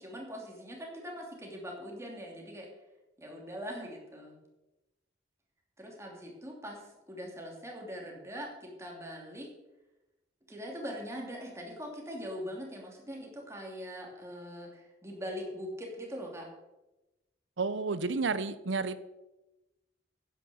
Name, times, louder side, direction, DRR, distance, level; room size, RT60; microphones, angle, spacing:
voice 1, 0.0-2.7 3.2-4.4 5.8-6.8 7.1-9.5 10.5-16.5, equal, 15° right, 0 dB, 2.9 m, -42 dB
voice 2, 17.6-19.0, right 4 dB, 80° right, 14 dB, 0.8 m, -31 dB
10.5 x 9.4 x 7.1 m, 1.0 s
head